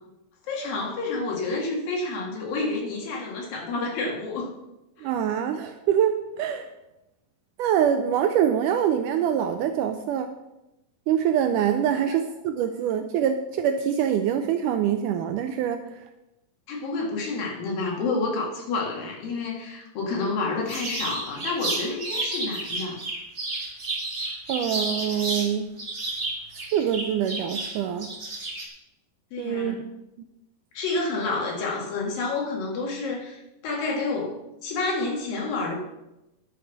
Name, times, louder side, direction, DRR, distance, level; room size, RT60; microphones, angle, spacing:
voice 1, 0.5-4.5 5.0-5.1 16.7-23.0 29.3-29.8 30.7-34.4 34.6-35.7, left 3 dB, 75° left, -1 dB, 3.8 m, -29 dB
voice 2, 5.0-6.7 7.6-10.3 11.1-16.0 24.5-25.7 26.5-28.1 29.4-29.8, right 9 dB, 80° right, 8 dB, 1.9 m, -25 dB
sound 1, 20.7-25.5 25.8-28.7, right 2 dB, 30° right, 1.1 m, -31 dB
11.0 x 7.2 x 5.9 m, 0.93 s
omnidirectional pair, 4.1 m